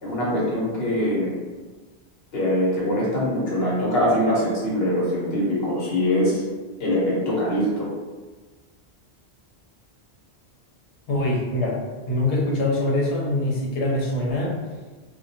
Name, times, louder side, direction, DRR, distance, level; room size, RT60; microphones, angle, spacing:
voice 1, 0.0-1.4 2.3-6.4 6.8-7.9, equal, 65° left, -6 dB, 1.0 m, -23 dB
voice 2, 11.1-11.8 12.1-14.5, left 1 dB, 90° left, -3 dB, 1.0 m, -23 dB
2.2 x 2.2 x 2.6 m, 1.3 s
omnidirectional pair, 1.1 m